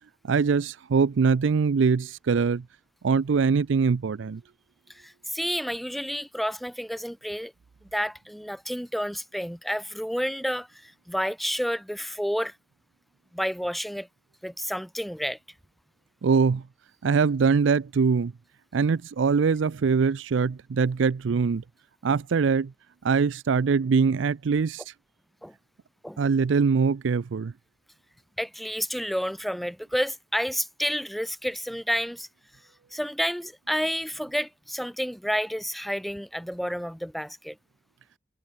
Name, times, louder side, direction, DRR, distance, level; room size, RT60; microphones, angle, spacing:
voice 1, 0.3-2.6 3.0-4.4 16.2-16.6 17.0-18.3 18.7-21.6 22.0-22.7 23.0-24.8 26.2-27.5, right 5 dB, 85° right, 0.4 m, -23 dB
voice 2, 4.9-7.5 7.8-12.5 13.3-14.1 14.4-15.4 25.4-25.5 26.0-26.2 28.4-32.3 32.9-37.6, equal, ahead, 0.6 m, -30 dB
head